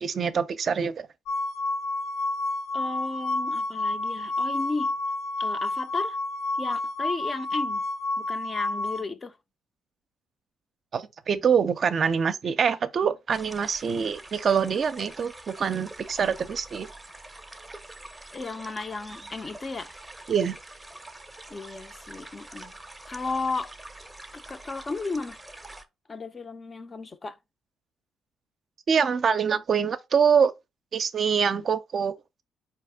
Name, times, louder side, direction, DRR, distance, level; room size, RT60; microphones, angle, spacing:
voice 1, 0.0-1.1 10.9-16.9 20.3-20.6 28.9-30.5 30.9-32.1, right 6 dB, 50° right, 0.4 m, -25 dB
sound 1, 1.3-9.0, left 2 dB, 80° left, 0.9 m, -29 dB
voice 2, 2.7-4.9 5.4-6.2 6.6-7.8 8.2-9.4 18.3-20.0 21.5-22.7 23.1-23.7 24.3-25.4 26.1-27.4, left 3 dB, 30° left, 0.5 m, -34 dB
sound 2, 13.3-25.9, right 2 dB, 10° right, 0.6 m, -45 dB
4.2 x 2.9 x 3.3 m
cardioid pair, 90°, 0 cm